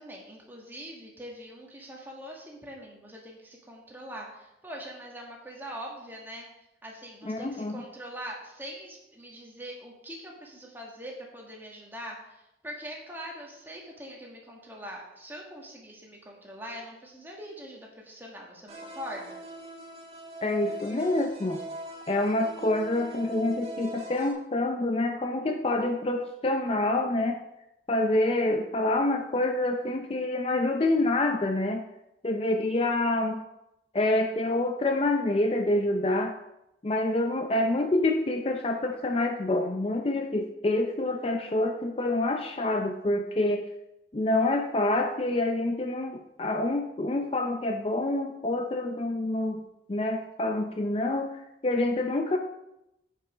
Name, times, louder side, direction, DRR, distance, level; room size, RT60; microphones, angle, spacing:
voice 1, 0.0-6.4 6.8-19.4, equal, 10° right, -1 dB, 1.7 m, -42 dB
voice 2, 7.2-7.8 20.4-21.6 22.1-27.4 27.9-31.8 32.2-33.4 33.9-36.3 36.8-43.6 44.1-49.6 49.9-51.3 51.6-52.4, left 2 dB, 35° left, 5 dB, 0.5 m, -27 dB
sound 1, 18.7-24.3, right 1 dB, 35° right, 1.6 m, -41 dB
9.2 x 5.5 x 4.9 m, 0.88 s
head